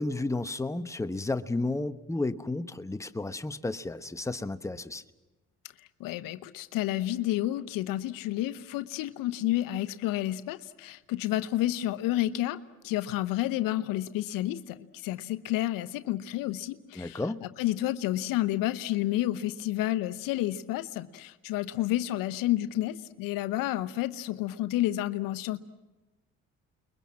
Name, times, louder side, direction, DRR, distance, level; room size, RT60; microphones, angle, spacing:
voice 1, 0.0-5.0 17.0-17.4, left 2 dB, 10° left, 10 dB, 1.1 m, -32 dB
voice 2, 6.0-12.6 12.8-17.2 17.6-25.6, left 15 dB, 85° left, 13 dB, 1.0 m, -30 dB
29.5 x 22.0 x 7.5 m, 1.1 s
supercardioid pair, 70°, 33 cm